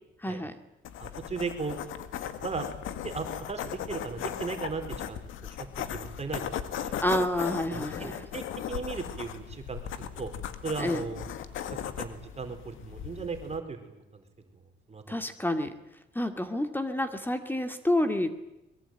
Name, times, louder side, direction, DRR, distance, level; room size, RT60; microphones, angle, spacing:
voice 1, 0.2-0.6 7.0-8.2 10.8-11.0 15.1-15.7 16.1-18.3, left 1 dB, 10° left, 8 dB, 2.3 m, -29 dB
sound 1, 0.8-13.6, left 9 dB, 85° left, 1.9 m, -37 dB
voice 2, 1.0-1.8 2.4-2.7 3.0-5.6 5.9-7.0 7.7-10.3 10.6-11.2 11.7-14.2 14.9-15.2, right 4 dB, 35° right, 5 dB, 4.4 m, -37 dB
23.0 x 22.5 x 9.3 m, 0.93 s
cardioid pair, 90°, 20 cm